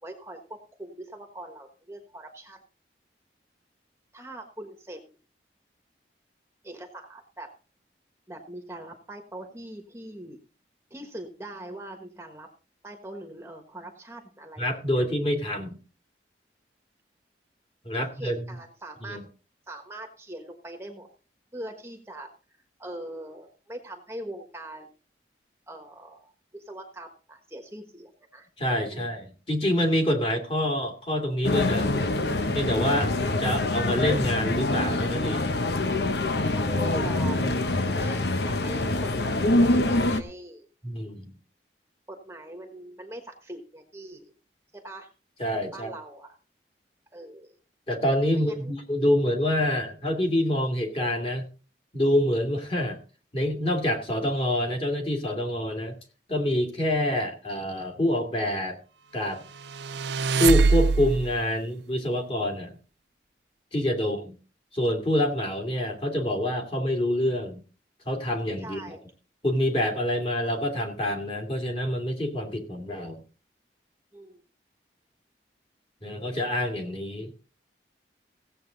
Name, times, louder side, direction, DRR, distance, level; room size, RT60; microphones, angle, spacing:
voice 1, 0.0-2.6 4.1-5.0 6.6-7.5 8.3-10.4 10.9-12.5 12.8-15.0 17.9-19.2 19.7-21.1 21.5-22.3 22.8-24.9 25.7-28.5 28.9-29.1 36.5-37.4 37.7-40.7 42.1-44.3 44.7-45.1 45.7-46.3 47.1-47.6 48.4-48.7 64.0-64.3 68.6-69.0 74.1-74.4, right 1 dB, 15° right, 4 dB, 1.3 m, -42 dB
voice 2, 14.6-15.8 17.8-18.5 19.0-19.2 28.6-31.9 32.5-33.1 33.4-35.6 40.8-41.3 45.4-45.9 47.9-51.4 51.9-53.0 53.3-55.9 56.3-58.8 59.1-59.4 60.4-62.8 63.7-64.4 64.7-67.6 68.1-68.8 69.4-73.2 76.0-77.3, left 1 dB, 30° left, 3 dB, 2.5 m, -26 dB
sound 1, 31.4-40.2, left 2 dB, 70° left, 1.0 m, -25 dB
sound 2, 59.6-61.4, right 4 dB, 75° right, 0.5 m, -23 dB
16.5 x 8.0 x 4.0 m, 0.38 s
head